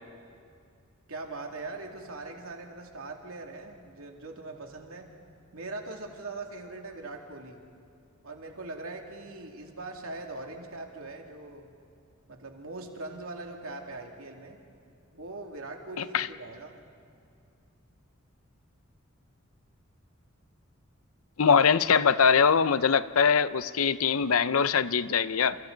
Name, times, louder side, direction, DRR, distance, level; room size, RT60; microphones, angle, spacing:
voice 1, 1.1-5.1 5.5-7.6 8.2-11.7 12.3-14.6 15.1-16.8, right 2 dB, 80° right, 1 dB, 2.6 m, -41 dB
voice 2, 21.4-25.6, left 6 dB, 85° left, 14 dB, 0.7 m, -22 dB
30.0 x 28.5 x 4.0 m, 2.4 s
head